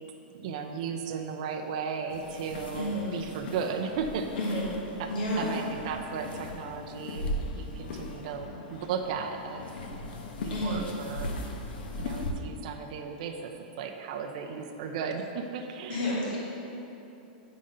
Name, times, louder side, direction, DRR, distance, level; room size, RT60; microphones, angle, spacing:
voice 1, 0.3-4.6 5.0-5.1 5.4-9.7 10.4-11.3 12.0-13.5 13.8-16.1, right 6 dB, 50° right, 3 dB, 0.5 m, -35 dB
sound 1, 2.1-12.3, left 1 dB, 85° left, 0.9 m, -38 dB
voice 2, 2.7-3.1 4.4-4.7 5.1-5.5 10.5-10.8 15.9-16.4, left 1 dB, 70° left, -6 dB, 1.7 m, -30 dB
8.8 x 3.8 x 5.4 m, 2.9 s
supercardioid pair, 170°, 5 cm